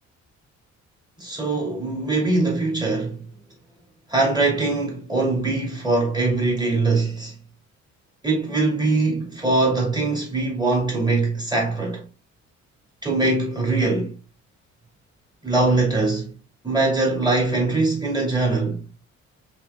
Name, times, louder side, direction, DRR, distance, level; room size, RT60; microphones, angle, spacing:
voice 1, 1.2-3.2 4.1-7.3 8.2-12.0 13.0-14.2 15.4-16.3 16.6-18.8, right 3 dB, 15° right, 2.6 m, -22 dB
4.7 x 4.0 x 2.3 m
cardioid pair, 90°, 30 cm